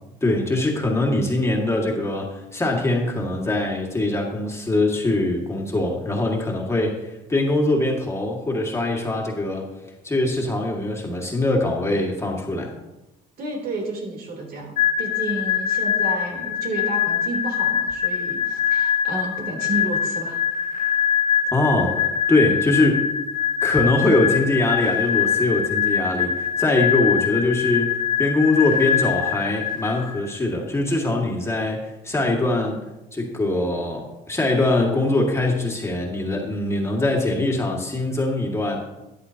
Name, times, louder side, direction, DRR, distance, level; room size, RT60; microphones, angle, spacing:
voice 1, 0.2-6.9 7.3-9.6 10.0-12.7 21.5-23.1 23.6-38.8, left 2 dB, 15° left, -1 dB, 2.1 m, -22 dB
voice 2, 13.4-20.4, right 2 dB, 65° right, 0 dB, 3.5 m, -31 dB
sound 1, 14.8-30.4, left 8 dB, 55° left, 1.1 m, -23 dB
13.5 x 10.5 x 2.9 m, 0.97 s
cardioid pair, 110°, 17 cm